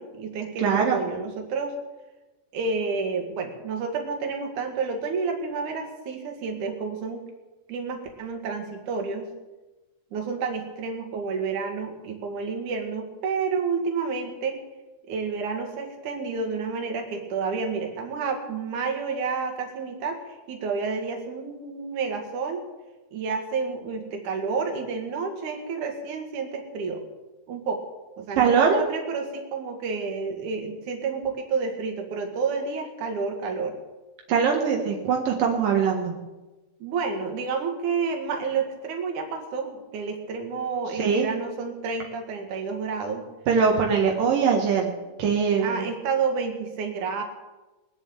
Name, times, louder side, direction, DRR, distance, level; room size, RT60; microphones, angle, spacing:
voice 1, 0.0-1.8 2.5-7.2 7.7-9.3 10.1-14.6 15.1-22.6 23.1-27.0 27.5-27.8 28.2-33.8 36.8-43.2 45.6-47.2, right 5 dB, 65° right, 3 dB, 3.4 m, -30 dB
voice 2, 0.6-1.0 28.4-28.8 34.3-36.1 41.0-41.4 43.5-44.9 45.2-45.9, right 6 dB, 80° right, 1 dB, 3.2 m, -22 dB
21.5 x 7.4 x 8.9 m, 1.1 s
omnidirectional pair, 3.9 m